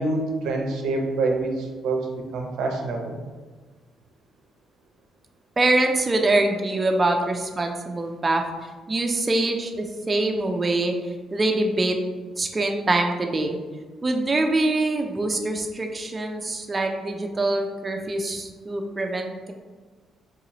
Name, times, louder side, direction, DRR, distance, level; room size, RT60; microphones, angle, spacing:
voice 1, 0.0-3.2, right 2 dB, 85° right, 2 dB, 0.5 m, -26 dB
voice 2, 5.6-10.9 11.3-12.0 12.4-13.6 14.0-19.5, right 2 dB, 25° right, 3 dB, 0.4 m, -24 dB
4.0 x 2.6 x 2.9 m, 1.4 s
cardioid pair, 90°, 0 cm